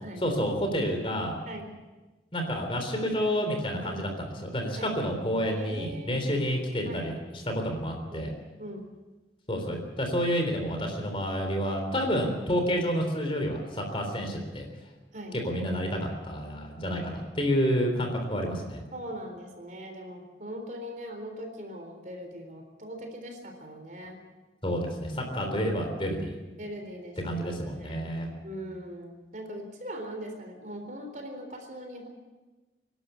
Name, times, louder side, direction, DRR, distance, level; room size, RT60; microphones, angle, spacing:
voice 1, 0.2-1.4 2.3-4.1 4.4-8.3 9.5-14.7 15.4-18.8 24.6-26.4 27.2-28.3, equal, 30° left, 4 dB, 3.6 m, -29 dB
voice 2, 5.5-6.3 6.9-7.1 8.1-8.3 8.6-8.8 15.1-15.4 18.9-24.2 25.4-25.7 26.6-27.2 27.7-28.0 28.4-32.1, equal, 45° right, 4 dB, 3.7 m, -40 dB
25.5 x 12.0 x 8.3 m, 1.2 s
head